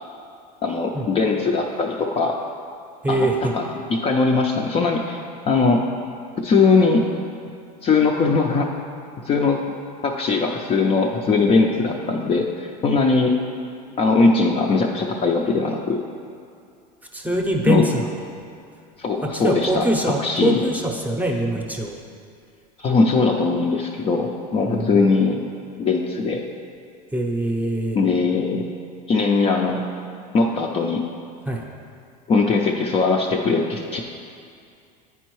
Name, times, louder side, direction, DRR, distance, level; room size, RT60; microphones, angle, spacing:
voice 1, 0.6-2.4 3.1-5.2 5.5-5.8 6.4-7.1 7.8-8.7 9.2-9.6 10.0-13.4 14.0-16.0 17.7-17.8 19.0-19.8 20.2-20.6 22.8-25.4 25.8-26.4 27.9-28.6 29.1-29.8 30.3-31.0 32.3-34.0, left 4 dB, 30° left, 0 dB, 0.4 m, -20 dB
voice 2, 3.0-3.5 17.1-18.1 19.4-22.0 24.7-25.1 27.1-28.0 31.5-31.6, right 1 dB, 10° right, 1 dB, 0.7 m, -23 dB
9.2 x 4.4 x 3.1 m, 2.4 s
supercardioid pair, 115°, 21 cm